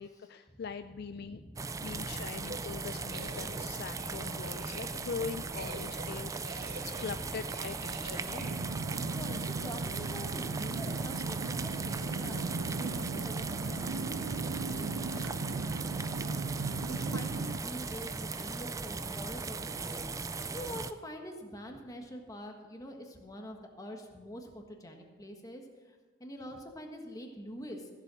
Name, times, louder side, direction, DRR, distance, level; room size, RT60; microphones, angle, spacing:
voice 1, 0.0-1.4 1.8-8.6, left 5 dB, 55° left, 10 dB, 0.4 m, -42 dB
voice 2, 1.0-1.8 4.2-4.3 6.9-7.3 8.9-27.9, equal, 20° left, 3 dB, 1.4 m, -46 dB
sound 1, 1.6-20.9, right 4 dB, 15° right, 0.4 m, -38 dB
sound 2, 2.4-8.5, right 3 dB, 55° right, 1.3 m, -47 dB
sound 3, 8.4-17.6, right 3 dB, 80° right, 0.5 m, -37 dB
14.5 x 7.5 x 6.2 m, 1.3 s
head